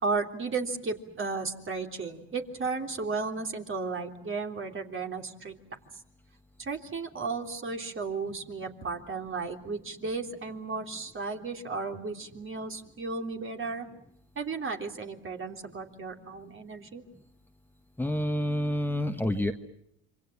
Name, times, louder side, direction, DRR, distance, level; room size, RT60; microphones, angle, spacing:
voice 1, 0.0-5.5 6.6-13.9 14.3-17.0, right 4 dB, 40° right, 4 dB, 3.3 m, -34 dB
voice 2, 18.0-19.5, equal, 5° left, 5 dB, 1.6 m, -28 dB
27.0 x 24.5 x 7.4 m, 0.73 s
supercardioid pair, 70°, 32 cm